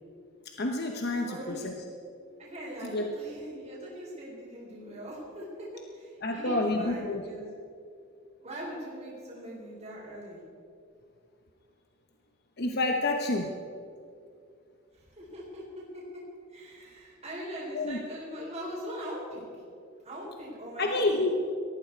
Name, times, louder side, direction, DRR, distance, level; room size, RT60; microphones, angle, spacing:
voice 1, 0.6-1.7 2.8-3.0 6.2-7.2 12.6-13.5 17.7-18.0 20.8-21.3, left 2 dB, 50° left, 3 dB, 1.0 m, -28 dB
voice 2, 1.2-1.7 2.4-7.5 8.4-10.4 14.9-15.6 15.9-16.2 16.5-19.6 20.0-21.3, equal, 30° right, -6 dB, 4.2 m, -41 dB
18.5 x 14.0 x 4.6 m, 2.4 s
head